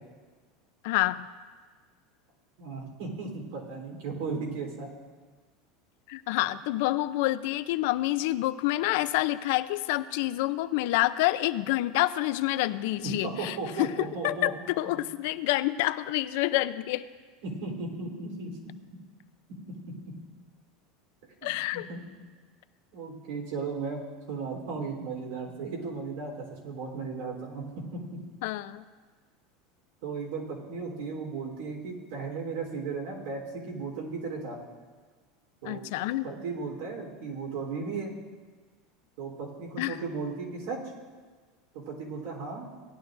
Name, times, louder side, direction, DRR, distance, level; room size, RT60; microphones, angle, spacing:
voice 1, 0.8-1.3 6.1-13.9 14.2-17.0 21.4-21.9 28.4-28.8 35.6-36.3 39.8-40.0, left 16 dB, 70° left, 13 dB, 0.4 m, -28 dB
voice 2, 2.6-4.9 13.0-14.7 15.0-15.1 17.4-18.5 19.9-20.0 21.4-22.0 22.9-27.7 27.9-28.2 30.0-34.6 35.6-35.8 36.2-38.2 39.2-40.8 41.7-42.7, right 4 dB, 80° right, -1 dB, 3.6 m, -36 dB
18.5 x 10.5 x 2.6 m, 1.5 s
supercardioid pair, 140°, 0 cm